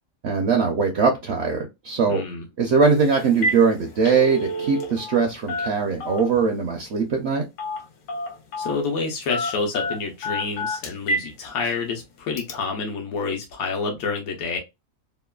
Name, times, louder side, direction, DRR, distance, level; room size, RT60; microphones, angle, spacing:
voice 1, 0.2-2.2 2.6-7.4, right 5 dB, 60° right, 3 dB, 0.7 m, -21 dB
voice 2, 2.1-2.4 8.6-14.6, left 4 dB, 90° left, 1 dB, 1.2 m, -28 dB
Telephone, 2.8-3.0 3.3-3.6 3.9-5.2 5.5-6.4 7.6-7.8 8.1-8.8 9.3-11.3 11.7-11.8 12.4-12.5, equal, 70° left, 1.0 m, -28 dB
3.1 x 2.1 x 2.2 m, 0.22 s
omnidirectional pair, 1.5 m